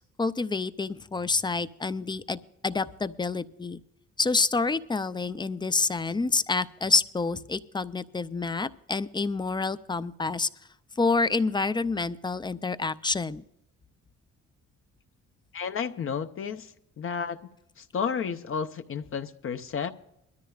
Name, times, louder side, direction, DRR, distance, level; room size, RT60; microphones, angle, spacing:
voice 1, 0.2-3.8 4.2-10.5 11.0-13.4, left 4 dB, 15° left, 14 dB, 0.4 m, -28 dB
voice 2, 15.5-17.4 17.8-19.9, left 6 dB, 45° left, 8 dB, 0.7 m, -32 dB
22.0 x 13.5 x 2.4 m, 0.84 s
cardioid pair, 130°, 29 cm